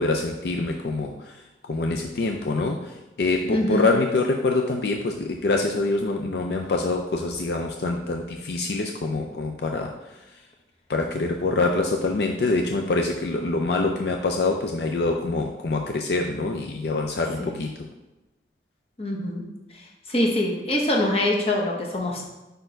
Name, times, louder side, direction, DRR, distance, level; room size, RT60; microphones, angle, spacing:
voice 1, 0.0-1.3 1.6-9.9 10.9-17.7, left 3 dB, 65° left, 2 dB, 0.4 m, -25 dB
voice 2, 3.5-3.9 17.4-17.6 19.0-19.4 19.7-22.2, left 1 dB, 35° left, -1 dB, 1.0 m, -24 dB
5.2 x 4.4 x 4.5 m, 1.0 s
head